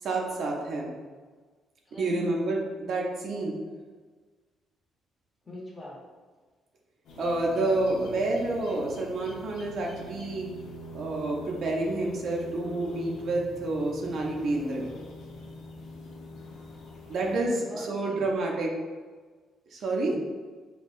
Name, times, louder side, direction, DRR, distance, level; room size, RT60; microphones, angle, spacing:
voice 1, 0.0-0.9 1.9-3.6 7.2-10.5 10.9-14.9 17.1-18.7 19.7-20.1, right 2 dB, 55° right, -1 dB, 0.5 m, -29 dB
voice 2, 1.9-2.4 5.4-6.0 17.2-18.3 19.7-20.2, left 1 dB, 20° left, -5 dB, 1.0 m, -42 dB
sound 1, 7.0-17.4, equal, 80° left, 0.8 m, -44 dB
5.3 x 2.2 x 2.5 m, 1.4 s
cardioid pair, 140°, 0 cm